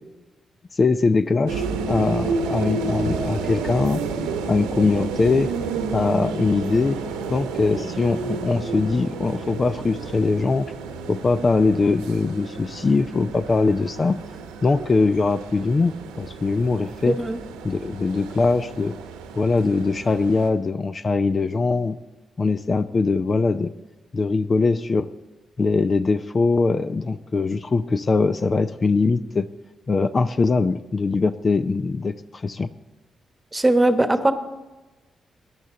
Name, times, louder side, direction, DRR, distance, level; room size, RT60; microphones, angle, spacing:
voice 1, 0.8-4.0 4.5-5.5 5.9-7.0 7.3-10.7 11.1-14.2 14.6-17.2 17.6-18.9 19.4-22.0 22.4-23.7 24.1-25.1 25.6-29.5 29.9-32.7, left 3 dB, 40° left, 12 dB, 0.5 m, -21 dB
sound 1, 1.5-20.5, right 4 dB, 85° right, 1.0 m, -31 dB
voice 2, 17.1-17.4 33.5-34.3, right 1 dB, 20° right, 9 dB, 1.2 m, -19 dB
17.5 x 10.5 x 3.9 m, 1.1 s
hypercardioid pair, 40°, 0 cm